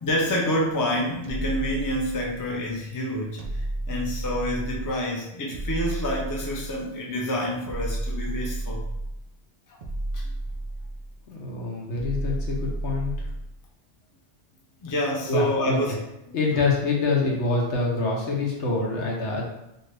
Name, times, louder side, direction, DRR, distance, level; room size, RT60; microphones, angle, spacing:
voice 1, 0.0-8.9 9.7-9.8 10.1-10.3 14.8-16.0 16.3-16.4, equal, 30° left, -2 dB, 0.4 m, -28 dB
sound 1, 1.2-2.6 3.4-5.0 5.5-6.9 7.7-9.3 9.8-11.2 11.9-13.6, right 1 dB, 65° right, 0.4 m, -32 dB
voice 2, 11.3-13.1 15.3-15.8 16.3-19.4, left 3 dB, 75° left, -2 dB, 1.1 m, -26 dB
2.7 x 2.6 x 3.3 m, 0.86 s
omnidirectional pair, 1.2 m